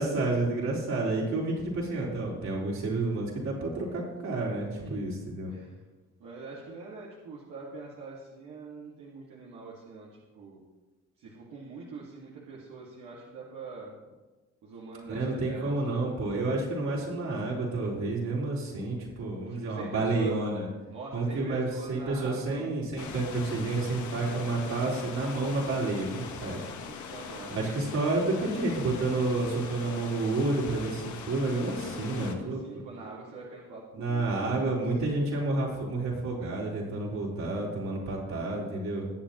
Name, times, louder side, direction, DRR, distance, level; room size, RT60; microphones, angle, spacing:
voice 1, 0.0-5.5 15.1-20.7 21.1-26.7 27.5-32.6 33.9-39.1, right 2 dB, 65° right, -4 dB, 3.9 m, -30 dB
voice 2, 5.5-5.8 6.2-10.6 11.2-13.9 14.6-16.1 19.5-20.5 20.9-22.7 26.8-28.4 31.9-34.7 35.2-35.3, right 3 dB, 85° right, -5 dB, 1.9 m, -44 dB
sound 1, 23.0-32.3, left 6 dB, 75° left, 1.2 m, -41 dB
20.5 x 7.6 x 3.0 m, 1.2 s
cardioid pair, 90°, 30 cm